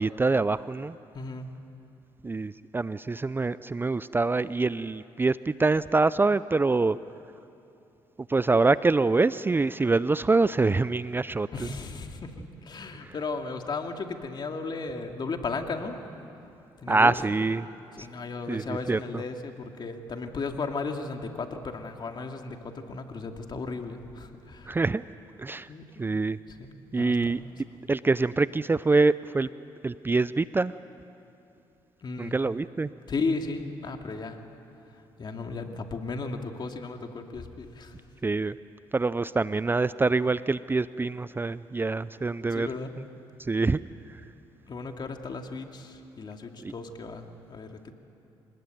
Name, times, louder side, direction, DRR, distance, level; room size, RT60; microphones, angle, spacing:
voice 1, 0.0-1.0 2.2-7.0 8.3-11.7 13.0-13.1 16.9-17.7 18.5-19.2 24.7-25.0 25.4-25.7 26.0-26.4 26.9-27.4 27.9-29.5 29.8-30.7 32.2-32.9 38.2-38.5 38.9-42.7 43.4-43.8 46.6-46.7, right 3 dB, 20° right, 16 dB, 0.5 m, -25 dB
voice 2, 1.1-1.5 11.5-16.0 16.8-17.1 18.0-24.8 25.7-26.2 26.5-26.7 26.9-27.5 32.0-32.3 33.1-34.4 35.2-37.9 42.5-42.9 44.7-47.7, left 4 dB, 45° left, 4 dB, 2.4 m, -35 dB
25.0 x 20.0 x 9.3 m, 2.8 s
supercardioid pair, 65°, 10 cm